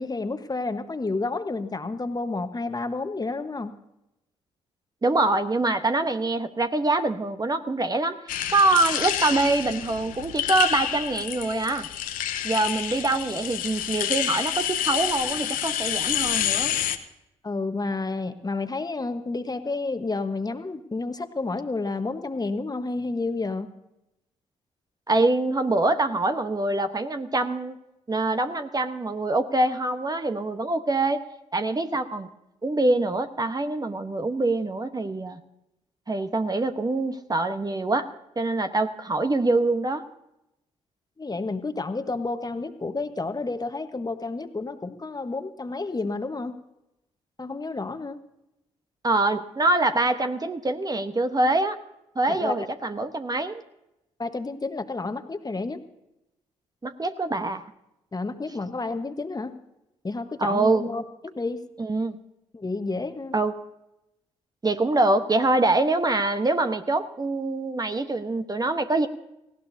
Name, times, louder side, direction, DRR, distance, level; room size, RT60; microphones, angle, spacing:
voice 1, 0.0-3.7 17.4-23.7 41.2-46.6 47.4-48.2 52.3-52.5 54.2-55.8 58.1-59.6 60.0-61.6 62.5-63.3, left 3 dB, 25° left, 9 dB, 1.3 m, -30 dB
voice 2, 5.0-8.2 8.5-11.9 12.4-16.7 25.1-27.8 28.1-31.2 31.5-32.3 32.6-35.4 36.1-38.1 38.4-40.0 49.0-51.8 52.1-53.6 56.8-57.6 60.4-60.9 61.8-62.2 63.3-63.5 64.6-69.1, right 2 dB, 25° right, 8 dB, 1.1 m, -24 dB
sound 1, 8.3-17.0, left 11 dB, 70° left, 0.9 m, -28 dB
19.0 x 17.0 x 2.8 m, 0.88 s
hypercardioid pair, 40°, 15 cm